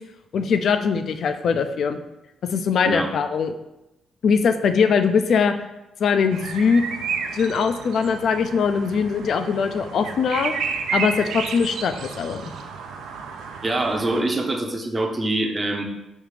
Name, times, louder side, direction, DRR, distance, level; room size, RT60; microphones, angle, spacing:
voice 1, 0.3-2.0 2.5-3.5 4.2-5.5 6.0-6.8 7.3-10.5 10.9-12.5, left 6 dB, 60° left, 9 dB, 0.3 m, -21 dB
sound 1, 6.3-14.2, right 5 dB, 80° right, 0.4 m, -31 dB
voice 2, 13.6-15.8, right 2 dB, 25° right, 4 dB, 0.6 m, -24 dB
5.2 x 2.4 x 3.1 m, 0.93 s
cardioid pair, 90°, 0 cm